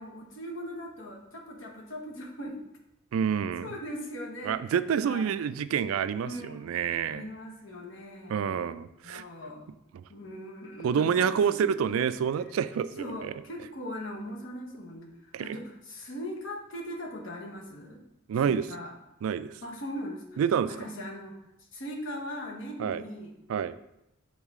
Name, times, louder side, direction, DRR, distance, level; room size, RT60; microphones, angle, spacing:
voice 1, 0.0-2.6 3.6-4.7 5.0-5.3 6.2-6.7 7.1-8.5 9.0-9.7 10.1-11.2 11.5-11.6 13.0-18.0 18.5-18.9 19.6-20.4 20.7-21.4 21.7-23.3, equal, 65° left, 0 dB, 1.1 m, -40 dB
voice 2, 3.1-3.7 4.4-7.3 8.3-9.2 9.9-10.0 10.8-13.3 15.3-15.6 18.3-18.7 19.2-19.6 20.4-20.9 22.8-23.0 23.5-23.8, right 7 dB, 85° right, 14 dB, 0.3 m, -28 dB
7.2 x 3.9 x 3.6 m, 0.85 s
head